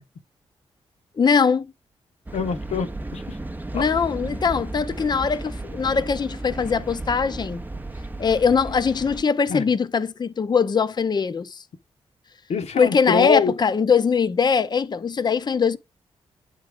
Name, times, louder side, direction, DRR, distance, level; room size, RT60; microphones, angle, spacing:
voice 1, 1.2-1.7 3.7-7.6 8.2-11.6 12.8-15.8, left 5 dB, 40° left, 0.6 m, -21 dB
voice 2, 2.3-3.4 3.7-3.8 9.5-9.7 12.5-13.5, left 6 dB, 75° left, 0.9 m, -24 dB
sound 1, 2.3-9.2, right 2 dB, 15° right, 0.6 m, -34 dB
8.8 x 3.7 x 4.7 m
cardioid pair, 65°, 11 cm